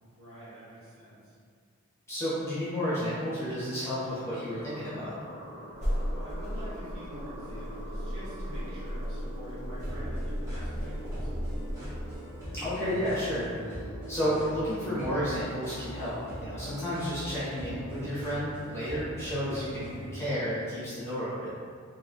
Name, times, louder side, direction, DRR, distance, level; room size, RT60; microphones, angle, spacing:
voice 1, 0.0-1.4 6.1-11.6, equal, 80° right, -9 dB, 1.1 m, -46 dB
voice 2, 2.1-5.1 12.5-13.8 14.1-21.5, equal, 10° left, -12 dB, 1.0 m, -32 dB
sound 1, 4.5-18.4, equal, 85° left, 0.9 m, -47 dB
sound 2, 5.7-12.2, equal, 35° right, 0.8 m, -35 dB
sound 3, 9.8-20.1, equal, 15° right, 1.3 m, -41 dB
2.9 x 2.8 x 2.6 m, 2.2 s
head